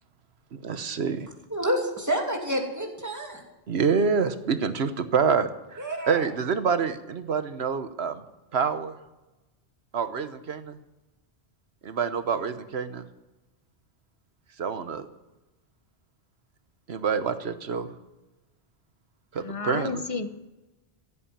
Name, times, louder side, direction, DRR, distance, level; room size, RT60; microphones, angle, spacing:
voice 1, 0.5-1.3 3.7-8.2 8.5-9.0 9.9-10.8 11.8-13.0 14.6-15.1 16.9-17.9 19.3-20.0, right 6 dB, 90° right, 10 dB, 1.3 m, -27 dB
voice 2, 1.5-3.4 5.8-6.2, right 1 dB, 15° right, 1 dB, 2.8 m, -28 dB
voice 3, 19.4-20.4, left 4 dB, 35° left, 10 dB, 1.0 m, -32 dB
16.0 x 8.5 x 8.7 m, 1.0 s
omnidirectional pair, 1.1 m